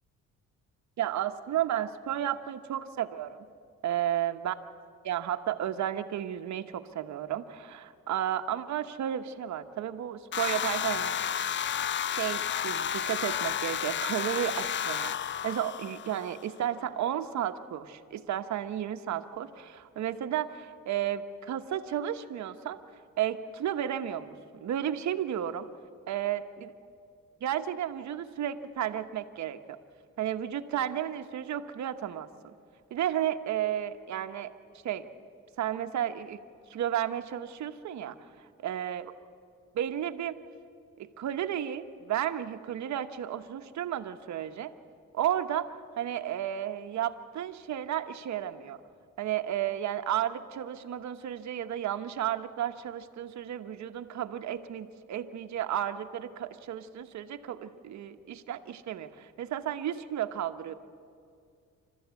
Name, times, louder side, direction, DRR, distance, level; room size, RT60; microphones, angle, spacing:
voice 1, 1.0-3.4 3.8-4.6 5.0-11.2 12.1-15.1 15.4-22.8 23.2-25.7 26.1-26.7 27.4-29.8 30.2-32.3 32.9-34.5 34.8-35.1 35.6-36.4 36.7-39.1 39.7-40.4 41.0-44.7 45.1-48.8 49.2-60.7, right 11 dB, 65° right, 8 dB, 1.1 m, -33 dB
sound 1, 10.3-16.5, left 9 dB, 40° left, 0.5 m, -32 dB
27.0 x 13.0 x 8.2 m, 2.3 s
cardioid pair, 90°, 30 cm